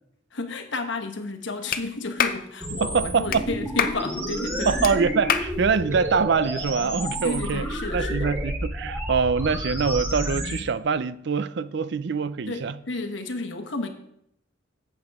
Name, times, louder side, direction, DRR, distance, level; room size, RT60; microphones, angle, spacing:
voice 1, 0.3-4.8 7.2-8.3 12.5-13.9, left 3 dB, 65° left, 1.2 m, -32 dB
Clapping, 1.7-1.8 2.2-2.4 3.3-3.4 3.8-4.0 4.8-4.9 5.3-5.5, left 7 dB, 45° left, 0.6 m, -24 dB
sound 1, 2.6-10.6, equal, 10° right, 2.0 m, -30 dB
voice 2, 2.8-3.4 4.7-7.7 7.9-12.8, right 5 dB, 60° right, 0.4 m, -24 dB
11.5 x 8.2 x 3.6 m
head